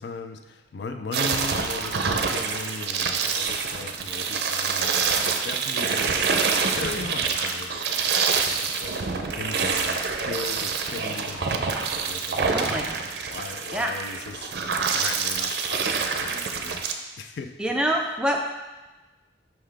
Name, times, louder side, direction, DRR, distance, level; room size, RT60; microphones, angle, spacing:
voice 1, 0.0-11.7 12.0-14.6 14.9-17.5, left 4 dB, 75° left, 8 dB, 0.4 m, -38 dB
sound 1, 1.1-16.9, right 5 dB, 65° right, 0.5 m, -26 dB
voice 2, 12.5-13.0 13.7-13.9 17.6-18.4, right 1 dB, 5° right, 1 dB, 0.5 m, -25 dB
5.7 x 5.4 x 3.3 m, 1.1 s
head